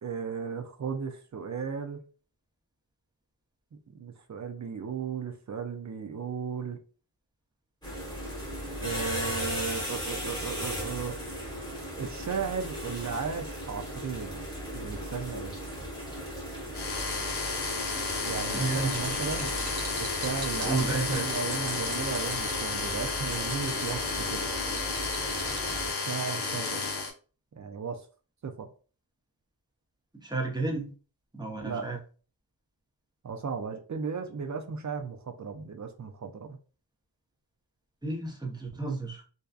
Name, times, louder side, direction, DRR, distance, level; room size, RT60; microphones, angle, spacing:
voice 1, 0.0-2.0 3.7-6.8 8.8-11.2 12.0-14.5 14.7-15.6 18.3-19.5 20.0-24.5 26.0-26.8 27.5-28.0 28.4-28.7 31.6-31.9 33.2-36.6, right 6 dB, 40° right, 0.4 m, -35 dB
sound 1, 7.8-25.9, equal, 10° left, 1.1 m, -37 dB
sound 2, 16.7-27.1, left 4 dB, 60° left, 0.7 m, -32 dB
voice 2, 18.5-19.0 20.6-21.3 30.2-30.9 31.3-32.0 38.0-39.2, right 3 dB, 10° right, 0.7 m, -31 dB
sound 3, 18.9-25.8, right 4 dB, 90° right, 1.0 m, -43 dB
2.6 x 2.2 x 2.3 m
wide cardioid pair, 50°, 46 cm